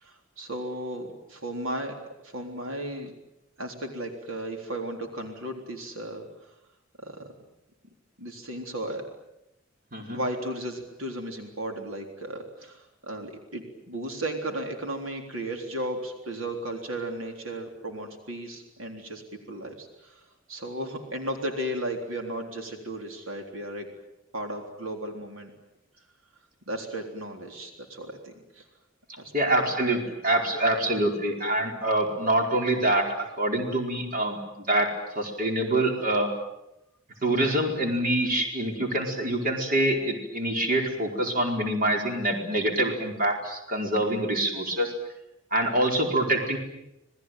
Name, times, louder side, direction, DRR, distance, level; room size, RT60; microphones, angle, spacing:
voice 1, 0.0-2.0 2.2-3.1 3.6-6.6 7.0-7.2 8.2-9.0 10.1-19.2 19.5-23.9 24.3-25.5 26.7-28.6 29.2-29.7, right 1 dB, 85° right, 3 dB, 3.7 m, -35 dB
voice 2, 29.3-34.9 35.1-36.3 37.2-44.9 45.5-46.6, right 1 dB, 45° right, 2 dB, 4.7 m, -25 dB
27.0 x 20.0 x 9.2 m, 0.87 s
head